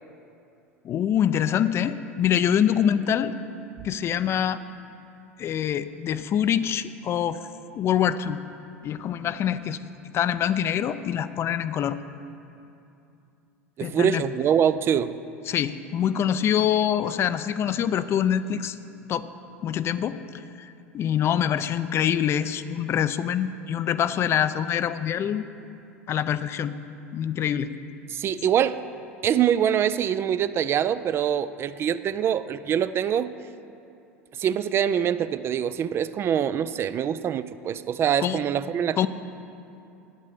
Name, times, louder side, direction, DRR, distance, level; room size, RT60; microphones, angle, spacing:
voice 1, 0.8-3.3 3.8-4.6 5.4-7.5 7.8-8.4 8.8-9.8 10.1-12.0 13.8-14.2 15.5-18.8 19.1-19.3 19.6-25.5 26.1-26.7 27.1-27.7 38.2-38.4 39.0-39.1, left 9 dB, 35° left, 13 dB, 0.5 m, -25 dB
voice 2, 13.8-15.1 28.1-28.8 29.2-33.3 34.3-39.1, right 9 dB, 35° right, 14 dB, 0.4 m, -24 dB
9.2 x 8.9 x 8.3 m, 2.7 s
figure-of-eight pair, 75°, 7 cm